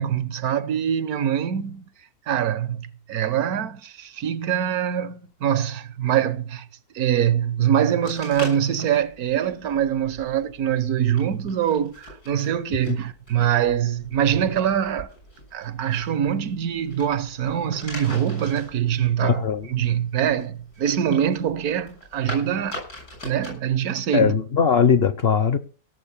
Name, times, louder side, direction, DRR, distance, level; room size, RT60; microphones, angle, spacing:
voice 1, 0.0-1.9 2.3-6.7 6.9-15.1 15.5-19.4 19.7-22.8 23.2-24.3, right 9 dB, 75° right, 1.4 m, -24 dB
sound 1, 8.0-23.6, equal, 90° left, 7.8 m, -42 dB
voice 2, 19.2-19.7 24.1-25.6, left 7 dB, 50° left, 0.9 m, -20 dB
17.0 x 7.2 x 7.1 m
omnidirectional pair, 1.6 m